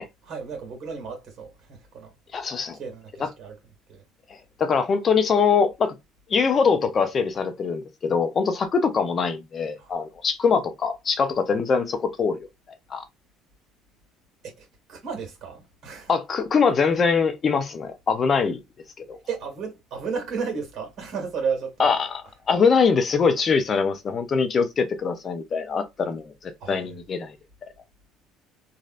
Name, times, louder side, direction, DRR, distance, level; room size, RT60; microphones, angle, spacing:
voice 1, 0.0-2.1 2.7-3.6 3.9-4.0 9.8-9.9 14.4-16.1 19.3-21.9 26.6-26.9, right 5 dB, 50° right, 1.8 m, -33 dB
voice 2, 2.3-2.8 3.2-3.3 4.6-5.9 6.3-12.4 12.9-13.0 16.1-18.6 19.1-19.2 21.8-22.2 22.5-27.3, left 5 dB, 35° left, 0.6 m, -23 dB
3.2 x 2.5 x 2.4 m
cardioid pair, 110°, 0 cm